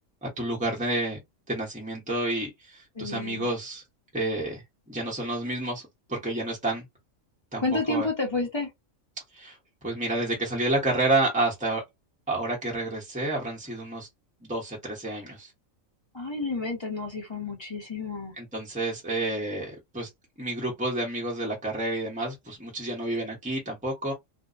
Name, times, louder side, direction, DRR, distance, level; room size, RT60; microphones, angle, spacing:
voice 1, 0.2-1.2 1.5-3.8 4.1-5.8 6.1-6.8 7.5-7.6 7.9-8.1 9.3-9.6 9.8-11.8 12.3-14.1 14.4-15.5 18.4-20.1 20.4-24.1, right 2 dB, 5° right, 0.8 m, -29 dB
voice 2, 2.9-3.5 7.6-8.7 16.1-18.3, left 3 dB, 25° left, 0.8 m, -30 dB
2.6 x 2.1 x 2.5 m
omnidirectional pair, 1.4 m